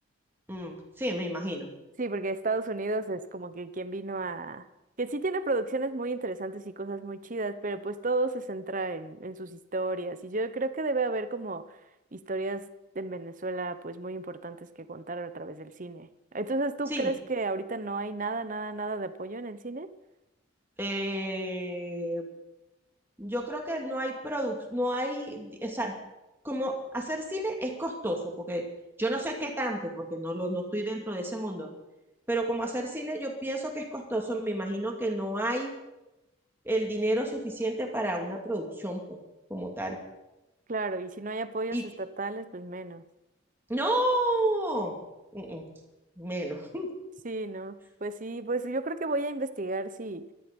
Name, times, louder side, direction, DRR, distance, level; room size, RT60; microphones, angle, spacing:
voice 1, 0.5-1.7 16.9-17.1 20.8-22.3 23.2-25.9 26.4-28.6 29.0-31.7 32.3-35.7 36.6-39.2 39.5-40.0 41.7-41.9 43.7-45.0 45.3-45.6 46.2-46.9, right 1 dB, 10° right, 1 dB, 2.6 m, -31 dB
voice 2, 2.0-4.6 5.0-11.8 12.1-12.7 12.9-19.9 40.7-43.0 47.2-50.3, right 2 dB, 40° right, 12 dB, 0.9 m, -33 dB
19.0 x 13.5 x 5.4 m, 0.98 s
head